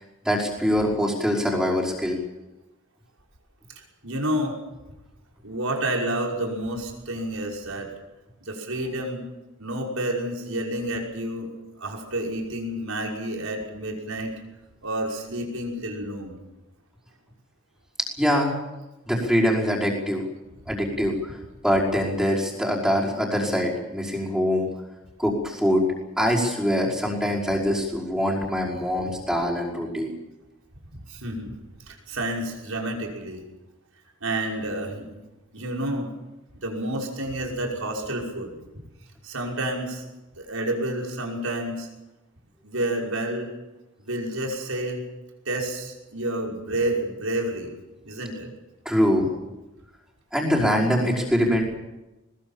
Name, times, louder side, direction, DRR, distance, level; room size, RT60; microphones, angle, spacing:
voice 1, 0.2-2.2 18.2-18.6 19.1-20.2 20.7-21.4 21.6-24.7 25.2-25.8 26.2-30.1 48.9-49.3 50.3-51.6, equal, 5° right, -4 dB, 5.4 m, -23 dB
voice 2, 3.8-4.6 5.4-7.9 8.4-9.3 9.6-11.5 11.8-14.3 14.8-16.4 20.7-20.8 31.1-31.5 31.9-33.4 34.2-35.1 35.5-36.1 36.6-38.6 39.2-40.0 40.4-41.9 42.6-43.5 44.0-45.0 45.5-47.7 48.0-48.5, right 1 dB, 80° right, 0 dB, 5.7 m, -29 dB
21.5 x 21.5 x 7.4 m, 1.0 s
head